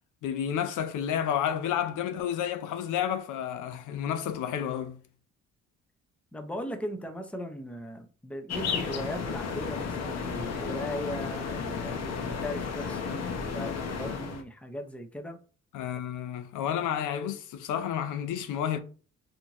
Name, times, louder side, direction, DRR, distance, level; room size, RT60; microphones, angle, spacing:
voice 1, 0.2-5.0 15.7-18.8, left 9 dB, 80° left, 0.6 m, -31 dB
voice 2, 6.3-15.4, equal, 5° left, 0.7 m, -38 dB
sound 1, 8.5-14.4, left 5 dB, 55° left, 0.9 m, -33 dB
4.2 x 2.7 x 2.9 m
cardioid pair, 90°, 30 cm